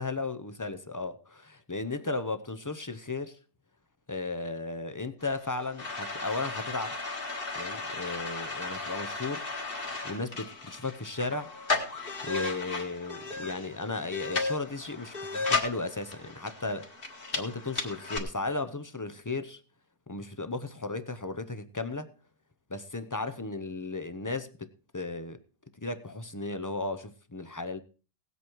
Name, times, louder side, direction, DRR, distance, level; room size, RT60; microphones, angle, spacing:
voice 1, 0.0-3.4 4.1-7.0 7.5-9.5 9.8-11.5 11.9-16.9 17.3-19.6 20.1-22.1 22.7-25.4 25.8-27.8, left 3 dB, 20° left, 0.5 m, -35 dB
sound 1, 5.2-18.2, left 3 dB, 40° left, 1.9 m, -35 dB
17.5 x 8.2 x 4.6 m
omnidirectional pair, 1.5 m